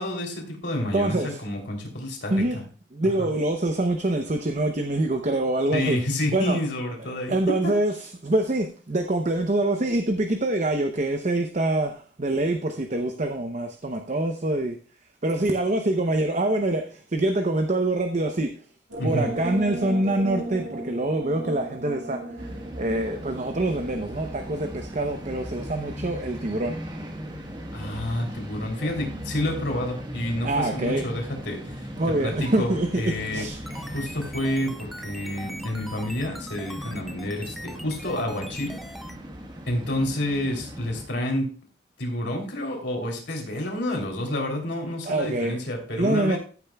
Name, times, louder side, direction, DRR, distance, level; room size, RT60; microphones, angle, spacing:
voice 1, 0.0-2.6 3.2-3.3 5.7-7.7 19.0-19.3 27.7-33.4 33.9-38.8 39.7-41.5 42.0-46.4, left 1 dB, 65° left, 3.2 m, -29 dB
voice 2, 0.9-1.4 2.3-2.6 2.9-6.0 6.3-6.6 7.3-14.8 15.2-18.5 19.0-26.8 30.4-31.1 31.7-33.0 33.3-33.6 45.1-45.6 45.9-46.4, right 2 dB, 40° right, 0.8 m, -25 dB
sound 1, 18.9-25.3, right 1 dB, 85° right, 2.1 m, -36 dB
sound 2, 22.4-41.1, equal, 25° right, 1.4 m, -38 dB
sound 3, 33.4-39.2, equal, ahead, 0.6 m, -41 dB
14.5 x 8.6 x 2.3 m
head